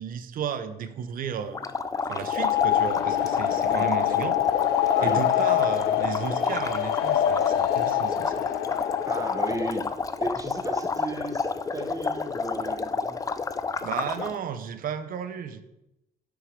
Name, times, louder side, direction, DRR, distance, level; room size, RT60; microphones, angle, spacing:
voice 1, 0.0-1.6 2.1-4.4 5.0-8.4 13.8-15.6, right 7 dB, 55° right, 11 dB, 0.8 m, -33 dB
sound 1, 1.5-14.4, left 4 dB, 20° left, 0.4 m, -30 dB
sound 2, 2.2-9.8, left 13 dB, 85° left, 0.5 m, -25 dB
voice 2, 9.1-9.9 10.2-13.2, right 2 dB, 20° right, 5 dB, 1.1 m, -35 dB
7.2 x 6.2 x 5.2 m, 0.89 s
cardioid pair, 110°, 17 cm